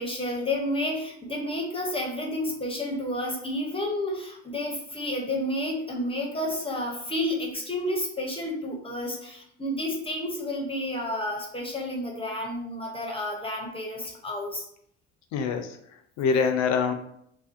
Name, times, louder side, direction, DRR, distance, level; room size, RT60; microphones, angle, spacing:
voice 1, 0.0-14.7, left 1 dB, 20° left, 0 dB, 0.5 m, -30 dB
voice 2, 15.3-16.9, left 5 dB, 65° left, 6 dB, 0.5 m, -25 dB
2.5 x 2.2 x 2.4 m, 0.68 s
supercardioid pair, 85°, 29 cm